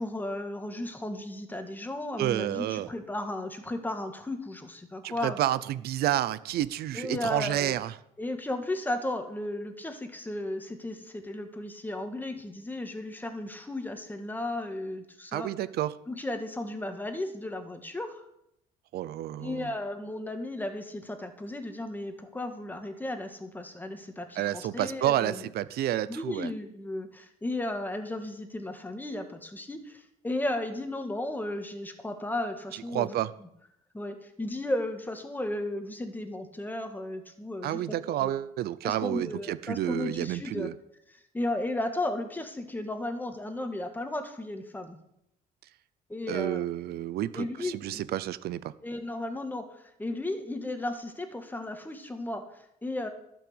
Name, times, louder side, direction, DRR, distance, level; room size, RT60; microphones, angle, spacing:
voice 1, 0.0-5.4 6.9-7.8 8.2-15.5 16.1-18.3 19.4-25.5 26.1-33.2 33.9-37.8 38.1-38.3 38.8-40.7 41.3-45.0 46.1-46.6 47.3-48.0 48.8-53.1, left 1 dB, 10° left, 6 dB, 1.7 m, -34 dB
voice 2, 2.2-2.9 5.0-7.9 15.3-15.9 18.9-19.7 24.4-26.5 32.9-33.3 37.6-40.7 46.3-48.7, right 13 dB, 70° right, 16 dB, 0.6 m, -30 dB
12.0 x 6.3 x 7.9 m, 0.77 s
cardioid pair, 110°, 17 cm